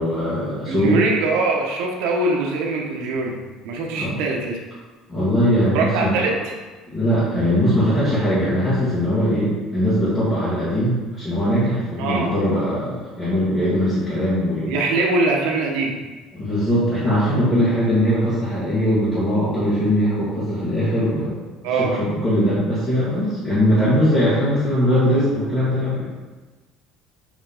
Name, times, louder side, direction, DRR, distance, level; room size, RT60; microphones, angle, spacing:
voice 1, 0.0-1.0 3.9-4.2 5.1-6.4 6.9-14.8 16.3-21.4 21.6-26.0, equal, 15° left, -13 dB, 2.0 m, -20 dB
voice 2, 0.7-4.6 5.7-6.5 12.0-12.3 14.7-16.0 21.6-22.0, right 3 dB, 65° right, 0 dB, 1.3 m, -22 dB
7.2 x 3.7 x 5.1 m, 1.3 s
cardioid pair, 175°, 0 cm